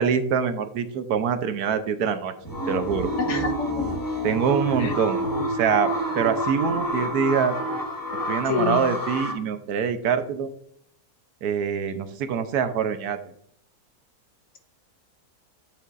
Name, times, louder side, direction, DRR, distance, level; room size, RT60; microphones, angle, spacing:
voice 1, 0.0-2.3 2.7-3.1 4.2-5.2 5.5-5.9 6.2-7.6 8.3-10.5 11.4-13.2, right 7 dB, 75° right, 10 dB, 1.2 m, -24 dB
sound 1, 2.4-9.3, equal, 15° left, 1.0 m, -28 dB
voice 2, 3.2-3.9 4.8-4.9 8.5-8.9, left 5 dB, 55° left, 5 dB, 1.1 m, -27 dB
8.1 x 6.9 x 2.5 m, 0.65 s
omnidirectional pair, 1.7 m